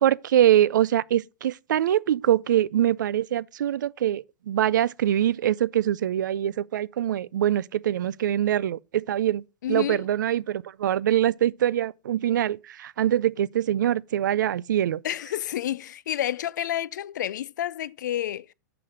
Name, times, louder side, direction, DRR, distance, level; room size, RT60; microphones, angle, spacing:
voice 1, 0.0-15.0, right 11 dB, 85° right, 0.4 m, -24 dB
voice 2, 9.6-10.0 15.0-18.5, left 11 dB, 70° left, 0.4 m, -29 dB
8.0 x 5.8 x 4.9 m
hypercardioid pair, 165°, 10 cm